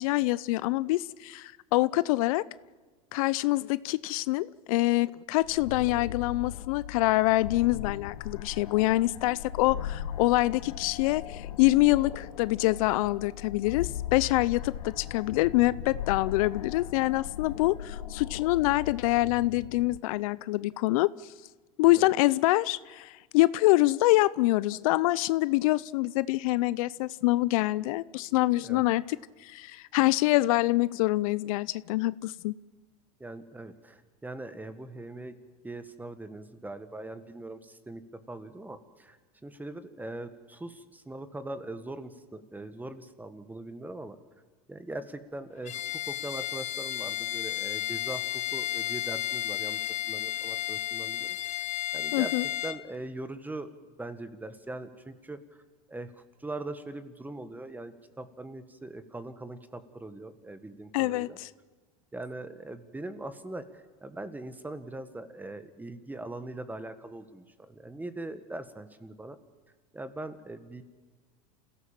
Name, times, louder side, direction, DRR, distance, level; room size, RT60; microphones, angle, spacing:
voice 1, 0.0-2.4 3.1-21.1 21.8-29.2 29.4-32.5 52.1-52.4 60.9-61.5, left 19 dB, 70° left, 19 dB, 0.6 m, -25 dB
sound 1, 5.4-20.0, left 11 dB, 85° left, 1.0 m, -39 dB
voice 2, 33.2-35.3 35.6-39.2 39.4-44.2 44.7-49.8 50.1-51.7 51.9-52.3 52.6-53.7 54.0-55.4 55.9-56.1 56.4-61.4 62.1-69.4 69.9-70.8, right 2 dB, 10° right, 11 dB, 1.7 m, -41 dB
Bowed string instrument, 45.6-52.8, left 13 dB, 40° left, 1.4 m, -33 dB
27.5 x 16.5 x 7.4 m, 1.4 s
hypercardioid pair, 105°, 19 cm